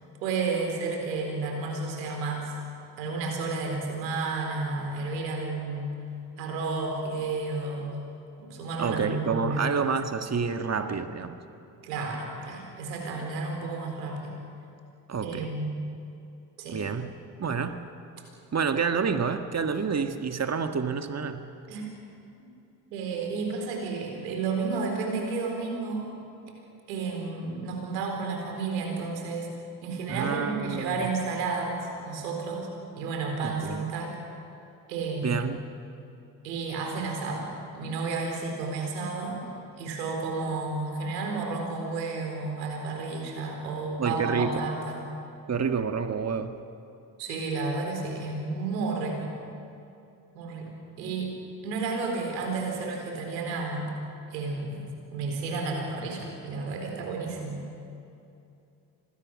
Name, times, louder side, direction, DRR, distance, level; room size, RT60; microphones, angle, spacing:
voice 1, 0.2-2.5 3.0-5.9 6.4-8.0 8.4-9.7 11.8-14.3 15.2-15.8 16.6-16.8 21.7-21.9 22.9-26.1 26.9-29.5 29.8-32.7 33.0-34.2 34.9-35.4 36.4-37.5 37.7-39.4 39.7-45.0 47.2-49.3 50.3-50.7 51.0-51.4 51.6-53.9 54.3-54.8 55.1-57.6, right 3 dB, 85° right, 2 dB, 4.3 m, -31 dB
voice 2, 8.8-11.4 15.1-15.5 16.7-17.1 17.4-17.8 18.5-21.4 30.1-31.1 33.4-33.9 35.2-35.6 44.0-44.6 45.5-46.6, right 5 dB, 30° right, 7 dB, 1.8 m, -28 dB
26.0 x 20.5 x 6.5 m, 2.6 s
hypercardioid pair, 50°, 49 cm